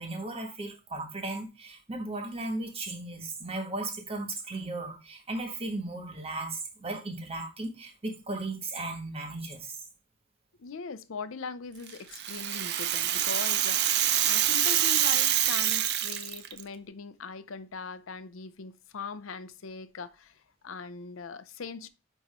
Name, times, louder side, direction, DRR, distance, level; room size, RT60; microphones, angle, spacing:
voice 1, 0.0-9.7, right 2 dB, 30° right, 1.5 m, -36 dB
voice 2, 10.6-21.9, left 5 dB, 70° left, 0.6 m, -41 dB
Rattle (instrument), 11.9-16.6, right 11 dB, 55° right, 0.6 m, -26 dB
9.0 x 3.0 x 4.3 m
head